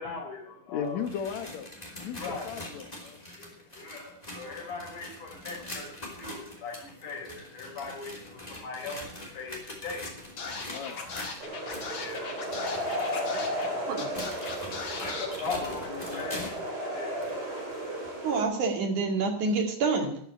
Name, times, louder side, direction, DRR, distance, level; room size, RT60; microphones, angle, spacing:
voice 1, 0.0-1.0 2.2-2.5 3.2-14.3 14.9-18.1, left 4 dB, 85° left, 0 dB, 5.8 m, -41 dB
voice 2, 0.7-1.7 2.0-3.2 10.7-11.0 15.6-16.5, left 7 dB, 70° left, 8 dB, 2.6 m, -37 dB
sound 1, 0.8-16.7 17.2-17.3 18.0-18.1 19.0-19.1, left 1 dB, 15° left, 3.0 m, -44 dB
Scratching (performance technique), 10.0-10.1 10.4-13.7 14.0-15.3, left 4 dB, 45° left, 2.5 m, -38 dB
sound 2, 11.4-18.4, equal, 35° right, 3.1 m, -34 dB
voice 3, 18.2-20.2, right 4 dB, 80° right, 4 dB, 3.8 m, -27 dB
13.5 x 6.8 x 9.9 m, 0.63 s
omnidirectional pair, 3.5 m